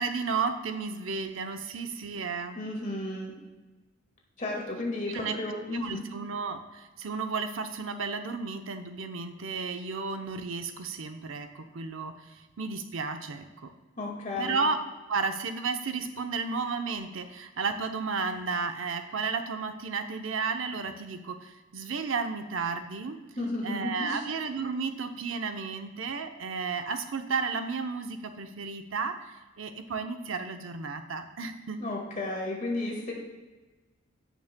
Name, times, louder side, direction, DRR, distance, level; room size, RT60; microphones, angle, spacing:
voice 1, 0.0-2.6 5.1-5.3 5.7-13.7 14.4-14.8 15.1-23.2 23.6-31.8, right 4 dB, 75° right, 7 dB, 0.7 m, -33 dB
voice 2, 2.5-3.3 4.4-6.0 14.0-14.6 23.4-24.2 31.8-33.1, left 2 dB, 40° left, -1 dB, 1.8 m, -33 dB
15.5 x 6.1 x 2.2 m, 1.2 s
head